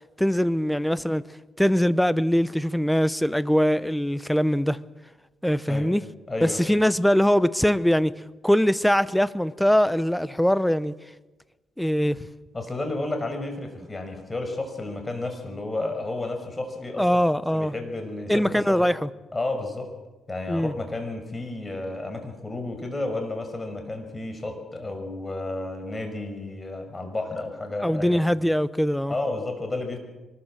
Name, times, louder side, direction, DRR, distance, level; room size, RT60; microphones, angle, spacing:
voice 1, 0.2-1.2 1.6-4.8 5.4-6.0 6.4-8.1 8.4-10.9 11.8-12.2 17.0-17.7 18.3-19.1 20.5-20.7 27.8-29.1, equal, 5° left, 0.9 m, -22 dB
voice 2, 6.3-6.8 12.5-17.1 17.5-18.9 19.3-19.9 20.3-28.2 29.1-30.0, left 2 dB, 20° left, 5.7 m, -32 dB
24.0 x 20.5 x 7.5 m
cardioid pair, 90°, 0 cm